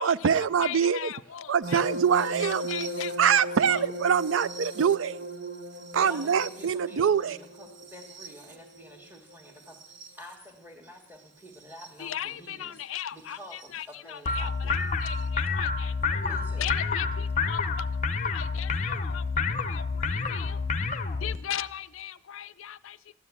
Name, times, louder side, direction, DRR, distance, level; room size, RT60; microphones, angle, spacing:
voice 1, 0.0-1.1 1.5-2.6 3.2-5.2 5.9-7.4, right 7 dB, 75° right, 0.4 m, -24 dB
voice 2, 0.6-1.8 2.2-3.3 3.7-3.8 12.0-16.2 16.6-17.9 18.2-20.6 21.2-23.1, left 10 dB, 80° left, 0.5 m, -38 dB
sound 1, 1.6-10.3 11.6-11.9 13.6-13.7, right 1 dB, 55° right, 1.0 m, -37 dB
voice 3, 6.0-9.8 10.1-14.9 16.2-16.7, equal, 10° right, 1.6 m, -48 dB
sound 2, 14.2-21.4, left 4 dB, 35° left, 0.6 m, -28 dB
13.0 x 9.6 x 8.4 m
head